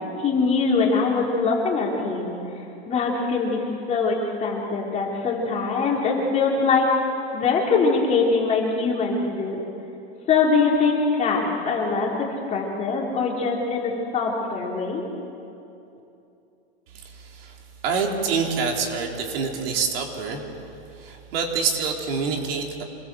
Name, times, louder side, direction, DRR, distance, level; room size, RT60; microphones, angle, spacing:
voice 1, 0.2-2.4 2.9-6.9 7.3-9.6 10.3-15.0, left 4 dB, 20° left, -2 dB, 4.0 m, -23 dB
voice 2, 16.9-20.4 21.0-22.8, right 5 dB, 65° right, 1 dB, 4.0 m, -26 dB
27.0 x 21.5 x 7.8 m, 2.7 s
supercardioid pair, 160°, 31 cm